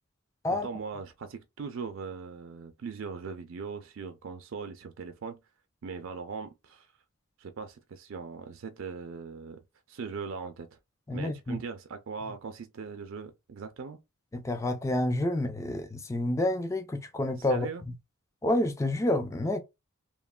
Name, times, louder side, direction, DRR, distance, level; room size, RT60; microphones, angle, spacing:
voice 1, 0.5-5.4 5.8-6.9 7.4-9.6 9.9-10.7 11.1-14.0 17.4-17.8, right 5 dB, 60° right, 0.4 m, -40 dB
voice 2, 11.1-11.6 14.3-17.9 18.4-19.6, left 1 dB, 15° left, 0.3 m, -29 dB
3.0 x 2.1 x 2.2 m
head